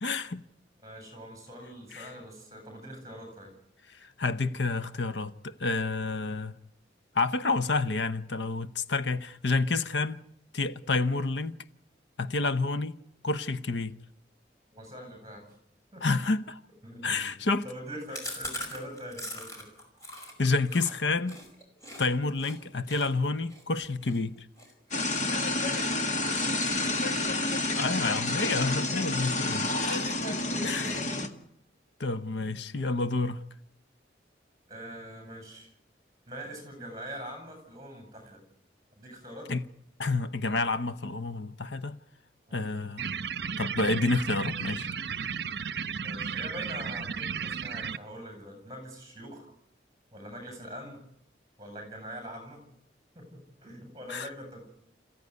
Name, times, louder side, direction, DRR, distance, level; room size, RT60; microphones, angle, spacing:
voice 1, 0.0-0.4 1.9-2.1 3.9-6.5 7.1-10.2 10.5-11.6 12.2-13.0 13.2-14.0 16.0-16.6 17.0-17.6 20.4-21.4 22.0-24.4 27.8-31.0 32.0-33.4 39.5-39.6 40.0-42.0 42.5-43.1 43.6-44.9 54.1-54.3, left 3 dB, 80° left, 0.9 m, -29 dB
voice 2, 0.8-3.5 14.7-15.5 15.9-16.2 16.8-17.3 17.6-19.7 26.2-27.2 30.4-31.2 34.7-35.7 36.3-38.4 39.0-39.5 42.5-42.8 46.0-49.5 50.1-51.0 51.6-52.6 53.1-54.7, equal, 20° right, 8.0 m, -43 dB
Chewing mastication, 18.1-22.0 22.4-22.6 22.9-25.9 26.3-26.6 26.9-27.7 28.0-28.1 28.4-28.5 28.8-29.4, equal, 20° left, 5.3 m, -42 dB
sound 1, 24.9-31.3, left 2 dB, 40° left, 1.7 m, -29 dB
sound 2, 43.0-48.0, right 6 dB, 65° right, 0.8 m, -34 dB
28.0 x 15.5 x 9.6 m
head